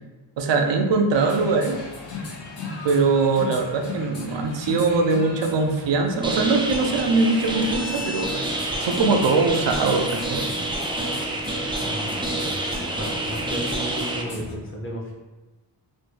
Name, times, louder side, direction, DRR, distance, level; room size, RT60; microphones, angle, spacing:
voice 1, 0.4-1.8 2.7-10.4, right 3 dB, 80° right, 4 dB, 0.5 m, -22 dB
sound 1, 1.1-14.5, left 3 dB, 75° left, 0.8 m, -37 dB
sound 2, 6.2-14.2, right 1 dB, 15° right, 0.3 m, -28 dB
voice 2, 11.8-15.1, equal, 30° left, -2 dB, 0.7 m, -34 dB
3.1 x 2.2 x 3.1 m, 1.1 s
wide cardioid pair, 90°, 43 cm